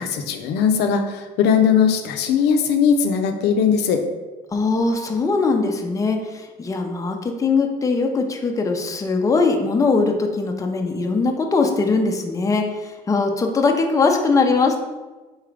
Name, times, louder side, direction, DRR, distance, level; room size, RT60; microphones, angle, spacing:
voice 1, 0.0-4.0, left 7 dB, 80° left, 5 dB, 0.5 m, -19 dB
voice 2, 4.5-14.8, left 4 dB, 20° left, 3 dB, 0.5 m, -21 dB
3.9 x 3.6 x 3.3 m, 1.2 s
cardioid pair, 110°, 17 cm